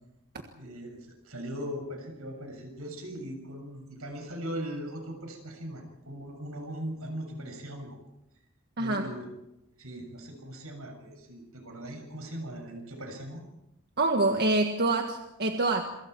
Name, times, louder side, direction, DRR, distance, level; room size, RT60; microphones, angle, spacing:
voice 1, 0.6-8.0 8.8-9.3 9.8-13.4, equal, 80° right, 4 dB, 7.1 m, -39 dB
voice 2, 14.0-15.8, right 2 dB, 50° right, 4 dB, 1.6 m, -26 dB
27.5 x 24.5 x 4.7 m, 0.88 s
head